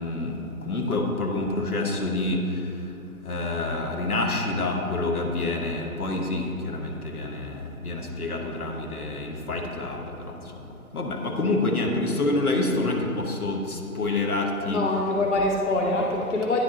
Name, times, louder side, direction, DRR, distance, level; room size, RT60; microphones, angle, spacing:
voice 1, 0.0-2.4 3.2-10.0 10.9-14.8, left 2 dB, 80° left, 1 dB, 1.2 m, -27 dB
voice 2, 14.7-16.6, left 2 dB, 55° left, 0 dB, 0.7 m, -24 dB
9.5 x 3.7 x 4.1 m, 2.7 s
figure-of-eight pair, 140°, 44 cm